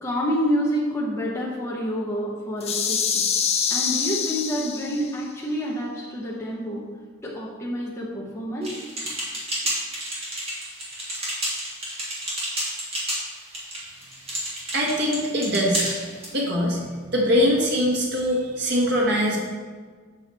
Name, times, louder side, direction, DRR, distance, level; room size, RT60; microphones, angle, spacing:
voice 1, 0.0-3.2 3.7-6.8 7.2-8.7, equal, 15° left, -5 dB, 1.0 m, -28 dB
sound 1, 2.6-5.2, left 7 dB, 30° left, 0.5 m, -25 dB
sound 2, 8.6-16.3, right 1 dB, 30° right, 2.0 m, -31 dB
voice 2, 14.7-15.8 16.3-16.8 17.1-19.4, equal, 55° right, -2 dB, 1.4 m, -22 dB
7.0 x 5.6 x 4.1 m, 1.5 s
head